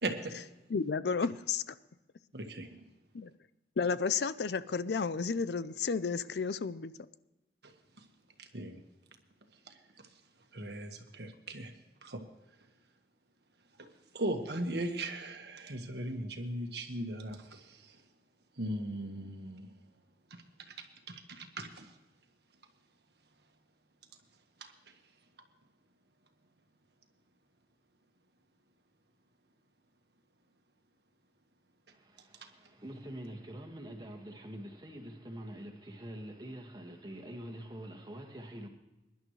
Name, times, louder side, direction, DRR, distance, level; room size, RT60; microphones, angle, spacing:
voice 1, 0.0-0.3 2.3-2.8 7.6-7.7 8.0-8.1 8.4-8.8 9.7-9.8 10.5-11.7 12.0-12.2 13.8-13.9 14.1-18.0 18.6-19.7 20.3-21.9 24.6-24.7 32.4-32.5, right 1 dB, 65° right, 1.6 m, -38 dB
voice 2, 0.7-1.7 3.1-3.3 3.8-6.9, left 5 dB, 70° left, 0.5 m, -32 dB
voice 3, 31.9-38.7, right 1 dB, 25° right, 1.7 m, -45 dB
22.5 x 11.0 x 3.2 m
head